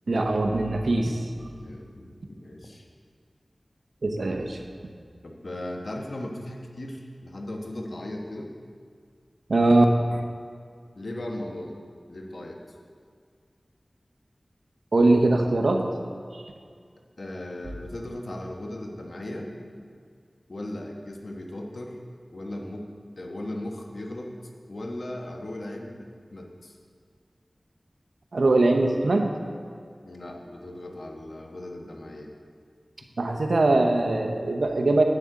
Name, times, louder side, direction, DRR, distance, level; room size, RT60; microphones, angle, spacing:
voice 1, 0.1-1.2 4.0-4.6 9.5-9.9 10.1-10.2 14.9-15.8 16.3-16.4 28.3-29.3 33.2-35.0, right 2 dB, 85° right, 4 dB, 0.8 m, -21 dB
voice 2, 1.5-2.9 5.2-8.5 10.9-11.7 12.1-12.6 17.2-19.5 20.5-22.0 22.3-22.9 23.2-24.4 24.7-26.8 30.0-32.3, left 1 dB, 75° left, 1 dB, 1.1 m, -37 dB
11.0 x 8.2 x 3.8 m, 2.1 s
wide cardioid pair, 40°, 0 cm